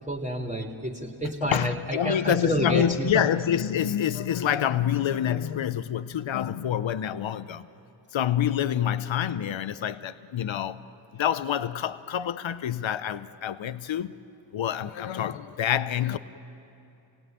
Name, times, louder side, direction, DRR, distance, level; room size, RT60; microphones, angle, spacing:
voice 1, 0.1-3.2, equal, 15° right, 3.2 m, -29 dB
voice 2, 1.4-7.7 8.1-10.8 11.1-14.1 14.5-16.2, left 9 dB, 80° left, 0.8 m, -27 dB
28.0 x 18.0 x 9.3 m
cardioid pair, 45°, 45 cm